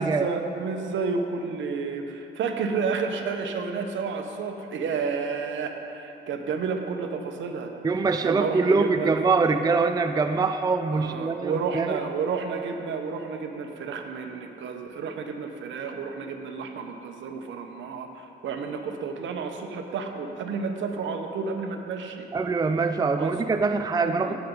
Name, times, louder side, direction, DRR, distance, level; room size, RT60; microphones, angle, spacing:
voice 1, 0.0-7.7 8.2-9.2 10.9-22.3 23.2-23.4 24.0-24.4, right 5 dB, 75° right, 5 dB, 1.2 m, -31 dB
voice 2, 7.8-12.0 22.3-24.4, right 4 dB, 20° right, 8 dB, 0.5 m, -24 dB
18.5 x 8.5 x 4.0 m, 2.8 s
cardioid pair, 90°, 20 cm